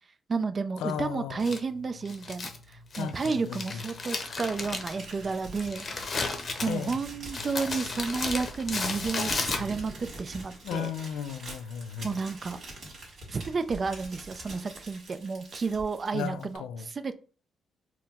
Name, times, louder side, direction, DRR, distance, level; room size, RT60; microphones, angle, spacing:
voice 1, 0.3-6.2 6.6-10.9 12.0-12.6 13.3-17.2, right 4 dB, 40° right, 0.4 m, -32 dB
voice 2, 0.8-1.5 3.0-3.8 6.6-6.9 10.6-12.1 16.1-16.9, left 8 dB, 85° left, 0.3 m, -35 dB
Crumpling crinkling, 1.4-10.0, left 3 dB, 40° left, 0.7 m, -35 dB
Crumpling crinkling 2, 4.5-16.6, right 2 dB, 55° right, 1.9 m, -44 dB
4.4 x 2.0 x 3.5 m
cardioid pair, 90°, 0 cm